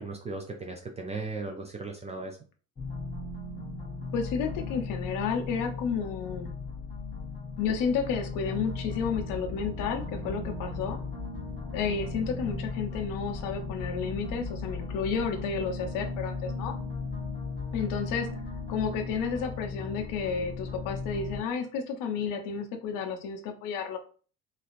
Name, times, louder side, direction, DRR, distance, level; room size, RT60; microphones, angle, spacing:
voice 1, 0.0-2.4, right 3 dB, 15° right, 2 dB, 0.4 m, -37 dB
sound 1, 2.8-21.4, left 4 dB, 20° left, 0.9 m, -36 dB
voice 2, 4.1-6.5 7.6-11.0 11.7-16.7 17.7-18.3 18.7-24.0, left 6 dB, 50° left, 5 dB, 0.7 m, -31 dB
3.1 x 2.3 x 2.5 m, 0.39 s
figure-of-eight pair, 50°, 44 cm